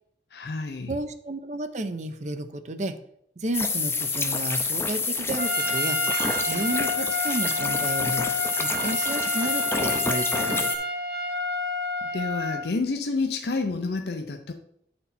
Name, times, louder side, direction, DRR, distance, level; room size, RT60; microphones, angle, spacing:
voice 1, 0.3-0.9 12.0-14.5, left 3 dB, 60° left, 5 dB, 0.5 m, -29 dB
voice 2, 0.9-3.0 3.4-6.0 6.4-8.3 8.6-10.7, right 2 dB, 40° right, 10 dB, 0.5 m, -32 dB
sound 1, 3.5-10.8, left 4 dB, 15° left, 0.5 m, -27 dB
Trumpet, 5.4-12.7, left 1 dB, 60° right, 0.9 m, -29 dB
9.1 x 4.4 x 4.2 m, 0.73 s
head